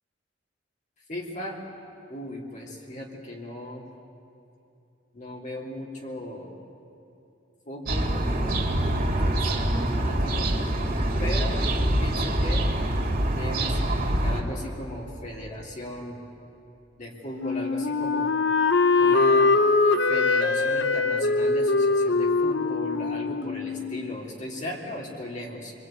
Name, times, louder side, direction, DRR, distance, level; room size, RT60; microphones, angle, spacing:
voice 1, 1.1-1.6 2.1-3.9 5.1-6.6 7.7-10.5 11.2-11.6 12.0-12.7 13.2-16.2 17.0-18.3 19.0-19.6 20.0-25.7, left 1 dB, 40° left, -2 dB, 3.8 m, -37 dB
sound 1, 7.9-14.4, right 1 dB, 50° right, 3.6 m, -25 dB
Wind instrument woodwind instrument, 17.4-24.2, left 3 dB, 80° left, 1.3 m, -22 dB
28.5 x 22.0 x 9.4 m, 2.9 s
head